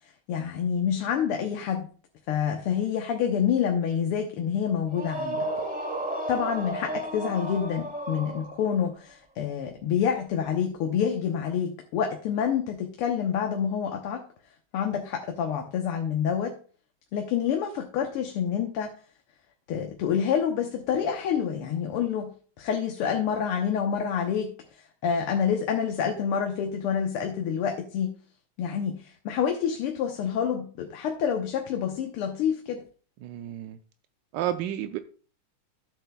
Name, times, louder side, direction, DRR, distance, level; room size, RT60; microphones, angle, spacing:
voice 1, 0.3-1.9 2.3-5.5 6.3-14.2 14.7-16.5 17.1-18.9 19.7-22.3 22.6-24.5 25.0-28.1 28.6-32.8, left 8 dB, 85° left, 3 dB, 1.9 m, -27 dB
sound 1, 4.9-8.9, right 1 dB, 5° right, 0.9 m, -33 dB
voice 2, 33.2-33.8 34.3-35.0, right 11 dB, 80° right, 9 dB, 1.0 m, -31 dB
13.0 x 8.0 x 2.2 m, 0.40 s
omnidirectional pair, 2.4 m